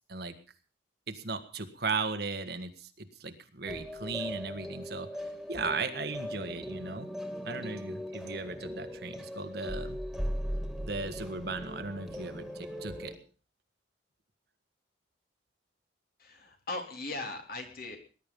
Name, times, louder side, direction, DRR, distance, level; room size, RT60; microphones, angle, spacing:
voice 1, 1.1-5.1 5.5-7.1 7.4-10.0 10.8-13.1, right 4 dB, 60° right, 8 dB, 1.6 m, -36 dB
sound 1, 3.7-13.2, equal, ahead, 2.5 m, -39 dB
voice 2, 16.2-18.0, left 2 dB, 55° left, 4 dB, 3.3 m, -39 dB
19.5 x 11.0 x 5.4 m, 0.38 s
head